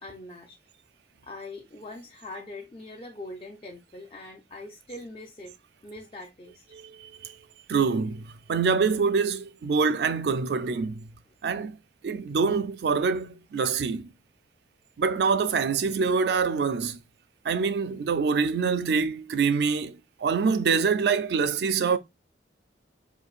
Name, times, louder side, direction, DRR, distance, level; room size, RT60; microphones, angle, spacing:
voice 1, 0.0-0.6 1.2-5.6 5.8-6.6, left 2 dB, 30° left, 0.4 m, -42 dB
voice 2, 6.7-7.1 7.7-11.1 11.4-11.8 12.0-14.1 15.0-17.0 17.5-22.0, right 5 dB, 65° right, 0.3 m, -25 dB
4.5 x 2.6 x 2.4 m
head